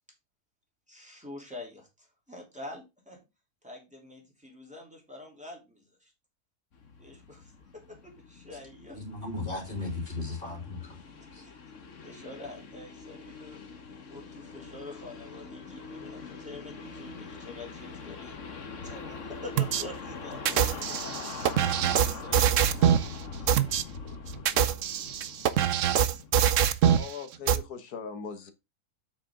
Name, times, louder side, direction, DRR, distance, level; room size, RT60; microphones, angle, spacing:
voice 1, 0.9-3.2 3.6-6.1 7.0-9.0 11.4-11.5 12.0-13.6 14.1-18.4 18.8-21.3 21.8-23.6, left 2 dB, 5° right, 3.3 m, -46 dB
sound 1, 6.7-26.3, left 4 dB, 50° left, 1.6 m, -43 dB
voice 2, 8.9-11.0 11.3-11.4, left 3 dB, 30° left, 3.4 m, -36 dB
sound 2, 19.6-19.8 20.5-23.1 23.5-23.8 24.3-27.1 27.5-27.6, right 9 dB, 60° right, 0.9 m, -24 dB
voice 3, 27.0-28.5, left 6 dB, 75° left, 1.8 m, -39 dB
8.2 x 6.5 x 3.7 m
omnidirectional pair, 1.7 m